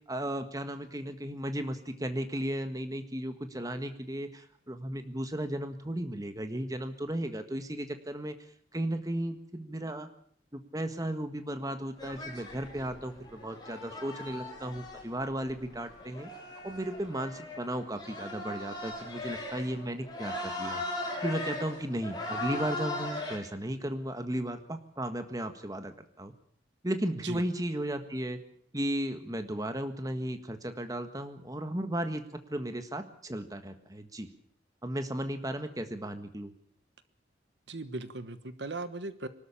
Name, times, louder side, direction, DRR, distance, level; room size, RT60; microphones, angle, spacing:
voice 1, 0.1-8.3 8.7-10.1 10.5-16.3 16.6-20.8 21.2-26.3 26.8-28.4 28.7-32.2 32.5-34.3 34.8-36.5, right 1 dB, 20° right, 8 dB, 1.6 m, -35 dB
sound 1, 12.0-23.4, left 2 dB, 20° left, 6.1 m, -39 dB
voice 2, 37.7-39.3, right 2 dB, 70° right, 11 dB, 1.3 m, -38 dB
24.5 x 13.0 x 8.7 m, 0.65 s
head